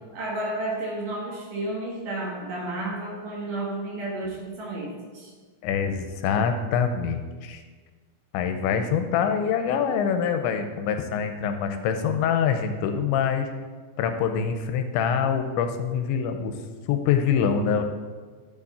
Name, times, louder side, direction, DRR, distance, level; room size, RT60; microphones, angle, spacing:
voice 1, 0.1-5.3, right 1 dB, 60° right, -3 dB, 2.8 m, -32 dB
voice 2, 5.6-7.6 8.3-13.5 14.0-16.6 16.9-17.8, left 7 dB, 85° left, 7 dB, 2.9 m, -25 dB
12.0 x 7.1 x 4.2 m, 1.5 s
omnidirectional pair, 5.2 m